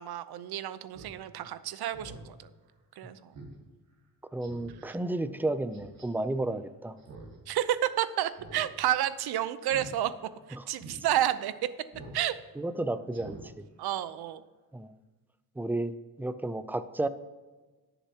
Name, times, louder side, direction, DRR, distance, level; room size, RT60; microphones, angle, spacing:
voice 1, 0.0-2.5 3.0-3.3 4.9-5.0 7.5-10.1 10.5-11.7 12.1-12.4 13.8-14.4, right 12 dB, 85° right, 13 dB, 0.7 m, -30 dB
Speech synthesizer, 0.9-1.1 1.5-1.6 1.9-2.3 2.7-2.8 3.3-3.5 3.9-4.0 4.4-4.8 5.7-6.0 7.0-7.4 7.6-7.7 8.3-8.7 8.9-9.2 9.6-9.9 10.3-10.4 10.8-11.0 11.9-12.2 12.5-12.7 13.1-13.4 13.8-13.9, right 3 dB, 45° right, 2.6 m, -46 dB
voice 2, 4.3-7.0 10.6-10.7 12.6-13.7 14.7-14.9 15.6-17.1, right 2 dB, 5° right, 12 dB, 0.3 m, -32 dB
19.0 x 6.9 x 2.9 m, 1.3 s
wide cardioid pair, 170°, 37 cm